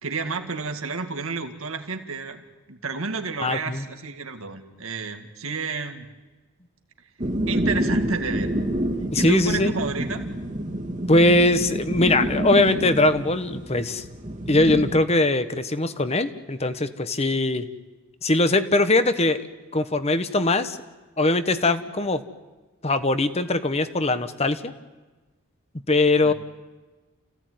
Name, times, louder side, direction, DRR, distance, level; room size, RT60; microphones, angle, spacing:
voice 1, 0.0-6.1 7.5-8.5 9.1-10.2 26.2-26.3, right 4 dB, 70° right, 6 dB, 2.0 m, -30 dB
voice 2, 3.4-3.8 9.1-9.7 11.1-14.0 14.5-17.7 18.2-19.4 19.7-20.8 21.2-22.2 22.8-24.7 25.9-26.3, left 2 dB, 30° left, 11 dB, 1.1 m, -21 dB
sound 1, 7.2-15.0, right 1 dB, 35° right, 2.1 m, -28 dB
29.0 x 16.5 x 9.5 m, 1.2 s
head